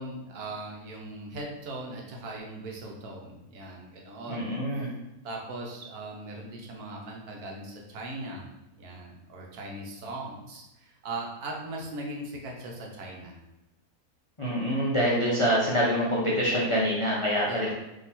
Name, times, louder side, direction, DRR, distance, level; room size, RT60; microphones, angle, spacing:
voice 1, 0.0-4.5 5.2-8.4 8.8-13.4 17.5-17.7, right 2 dB, 70° right, 0 dB, 1.3 m, -39 dB
voice 2, 4.3-4.9 14.4-17.7, equal, 55° left, -6 dB, 0.3 m, -25 dB
3.8 x 2.9 x 4.1 m, 0.96 s
omnidirectional pair, 1.7 m